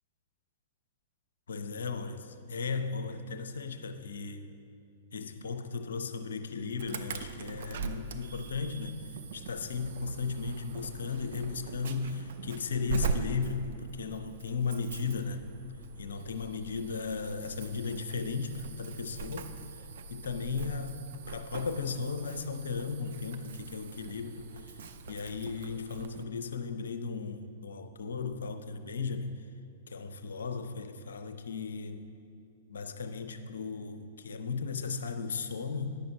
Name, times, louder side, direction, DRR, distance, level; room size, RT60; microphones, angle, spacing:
voice 1, 1.5-4.5 5.1-15.5 16.0-19.5 20.1-29.4 29.9-32.1 32.7-36.0, left 5 dB, 65° left, 0.4 m, -36 dB
Insect / Alarm, 6.8-26.2, right 4 dB, 55° right, 0.4 m, -41 dB
9.4 x 5.8 x 3.8 m
figure-of-eight pair, 105°, 0 cm